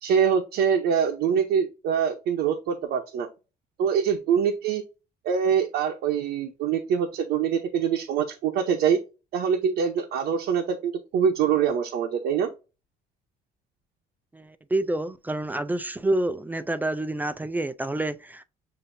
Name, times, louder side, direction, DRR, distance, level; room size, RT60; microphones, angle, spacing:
voice 1, 0.0-3.3 3.8-4.8 5.2-9.0 9.3-12.5, right 7 dB, 80° right, 0.8 m, -24 dB
voice 2, 14.3-18.4, right 1 dB, 10° right, 0.4 m, -28 dB
7.0 x 2.7 x 2.6 m
cardioid pair, 110°, 17 cm